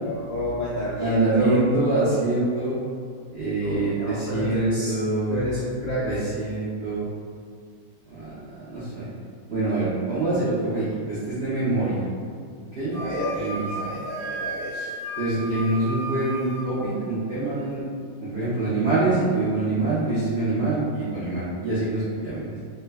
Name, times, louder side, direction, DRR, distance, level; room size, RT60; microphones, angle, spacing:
voice 1, 0.0-1.6 3.6-4.9 5.3-6.2 12.9-14.9, equal, 70° left, -10 dB, 0.7 m, -29 dB
voice 2, 1.0-2.7 3.3-5.3 6.0-7.0 8.1-9.1 9.5-12.0 12.7-12.9 13.3-13.7 15.2-17.8 18.2-22.6, right 2 dB, 90° right, -10 dB, 0.5 m, -25 dB
Wind instrument woodwind instrument, 12.9-16.7, right 1 dB, 75° right, 1.3 m, -34 dB
3.1 x 2.3 x 3.2 m, 2.1 s
omnidirectional pair, 2.0 m